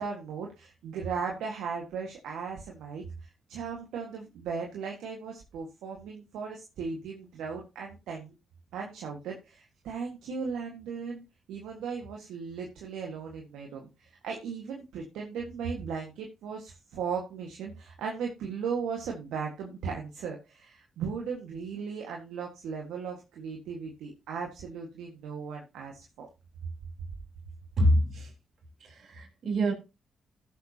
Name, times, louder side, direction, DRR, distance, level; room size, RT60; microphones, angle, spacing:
voice 1, 0.0-8.3 8.7-11.2 11.5-26.3, right 5 dB, 80° right, 1.6 m, -37 dB
voice 2, 27.8-28.3 28.8-29.7, equal, 65° right, 3.7 m, -26 dB
15.5 x 7.5 x 2.8 m
supercardioid pair, 45°, 0 cm